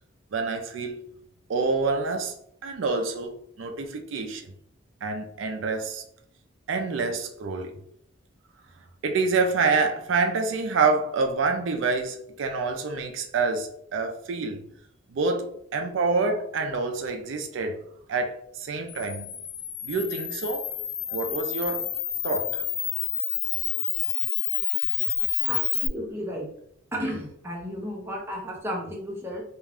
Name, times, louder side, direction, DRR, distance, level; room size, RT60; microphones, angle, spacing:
voice 1, 0.3-1.0 1.5-2.3 2.6-4.4 5.0-6.0 6.7-7.7 9.0-14.7 15.1-17.8 18.1-19.3 19.8-20.7 21.1-21.8 22.2-22.6, right 4 dB, 75° right, 0.4 m, -27 dB
Camera, 18.9-25.9, left 10 dB, 60° left, 0.4 m, -29 dB
voice 2, 25.5-26.5 26.9-29.4, equal, 15° right, 0.6 m, -33 dB
2.4 x 2.1 x 3.4 m
head